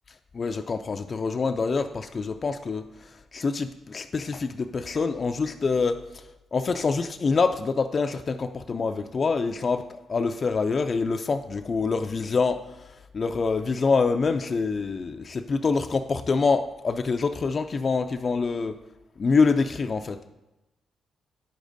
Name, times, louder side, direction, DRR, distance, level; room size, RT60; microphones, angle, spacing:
voice 1, 0.3-6.2 6.5-18.8 19.2-20.2, left 4 dB, 45° left, 6 dB, 0.3 m, -26 dB
9.3 x 6.3 x 2.6 m, 1.0 s
cardioid pair, 80°, 0 cm